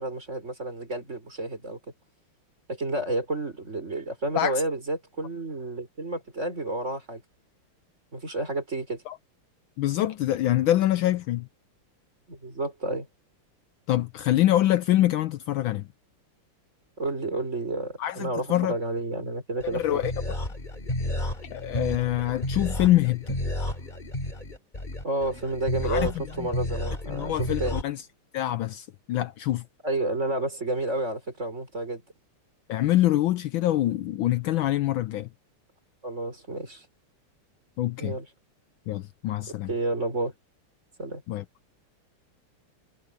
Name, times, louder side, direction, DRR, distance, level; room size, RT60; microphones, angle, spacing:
voice 1, 0.0-1.8 2.7-7.2 8.1-9.0 12.3-13.1 17.0-20.0 25.0-27.8 29.8-32.0 36.0-36.9 38.0-38.3 39.7-40.3 41.0-41.2, right 2 dB, 30° right, 5.3 m, -30 dB
voice 2, 9.8-11.5 13.9-15.9 18.0-18.7 19.7-20.1 21.5-23.4 25.8-26.1 26.4-26.5 27.1-28.0 28.3-29.6 32.7-35.3 37.8-38.2 38.9-39.7 41.3-41.4, left 14 dB, 75° left, 1.3 m, -25 dB
sound 1, 19.6-27.8, left 1 dB, 20° left, 3.2 m, -32 dB
omnidirectional pair, 2.4 m